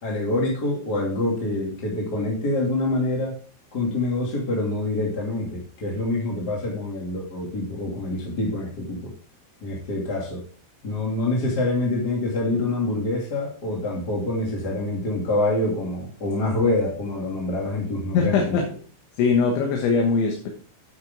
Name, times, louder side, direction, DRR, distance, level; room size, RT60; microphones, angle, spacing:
voice 1, 0.0-3.4 3.7-9.1 9.6-10.4 10.8-18.6, left 2 dB, 30° left, -2 dB, 1.9 m, -26 dB
voice 2, 18.1-18.7 19.2-20.5, left 5 dB, 70° left, 1 dB, 3.4 m, -21 dB
9.7 x 8.9 x 3.7 m, 0.41 s
omnidirectional pair, 5.9 m